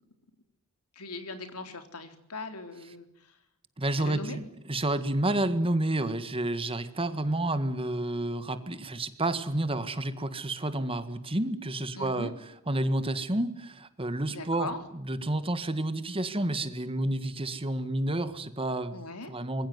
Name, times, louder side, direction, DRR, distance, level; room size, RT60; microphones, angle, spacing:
voice 1, 1.0-3.3 4.0-4.4 12.0-12.3 14.3-14.8 18.9-19.4, left 3 dB, 80° left, 7 dB, 3.8 m, -40 dB
voice 2, 3.8-12.3 12.7-19.7, right 1 dB, 25° right, 11 dB, 1.8 m, -30 dB
25.5 x 22.0 x 9.6 m, 0.78 s
head